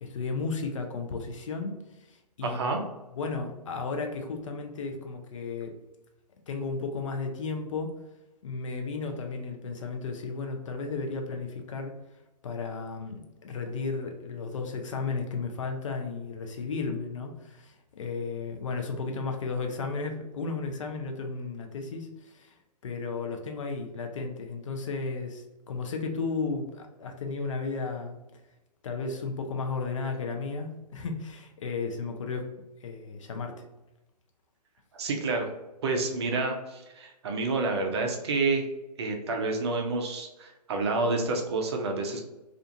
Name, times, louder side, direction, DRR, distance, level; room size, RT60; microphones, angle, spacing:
voice 1, 0.0-2.6 3.1-5.7 6.5-7.9 8.4-11.9 12.4-22.5 22.8-28.2 28.8-32.5 32.8-33.6, left 4 dB, 50° left, 4 dB, 0.5 m, -34 dB
voice 2, 2.4-2.8 34.9-35.5 35.8-38.6 39.0-42.2, right 3 dB, 40° right, 2 dB, 0.5 m, -29 dB
2.4 x 2.4 x 2.6 m, 0.99 s
figure-of-eight pair, 130°, 21 cm